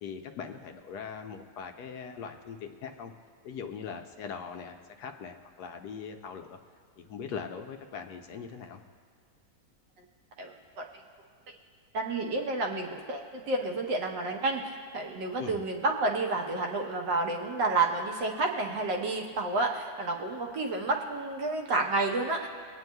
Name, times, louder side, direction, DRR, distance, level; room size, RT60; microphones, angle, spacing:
voice 1, 0.0-3.1 3.4-6.6 7.0-8.8 15.4-15.6, left 6 dB, 70° left, 5 dB, 1.2 m, -41 dB
voice 2, 10.4-10.9 11.9-22.5, right 3 dB, 85° right, 1 dB, 1.7 m, -30 dB
24.5 x 9.2 x 2.3 m, 2.1 s
omnidirectional pair, 1.9 m